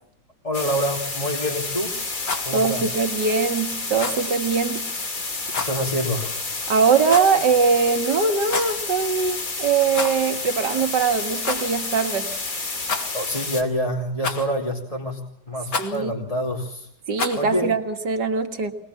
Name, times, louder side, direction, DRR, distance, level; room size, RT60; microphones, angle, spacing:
voice 1, 0.4-1.9 2.4-2.9 5.6-6.4 13.1-15.2 15.5-16.9 17.4-17.7, equal, 20° left, -1 dB, 2.9 m, -26 dB
sound 1, 0.5-13.6, left 3 dB, 55° left, 3.2 m, -30 dB
Rattle, 2.1-2.5 3.9-4.2 5.5-5.8 7.0-7.4 8.4-8.8 9.9-10.3 10.6-10.7 11.4-11.7 12.8-13.3 14.2-14.6 15.7-16.0 17.1-17.5, left 4 dB, 90° left, 3.0 m, -29 dB
voice 2, 2.5-4.9 6.7-12.3 15.8-16.1 17.1-18.7, right 5 dB, 85° right, 6 dB, 2.5 m, -22 dB
24.5 x 21.0 x 7.3 m, 0.74 s
omnidirectional pair, 1.8 m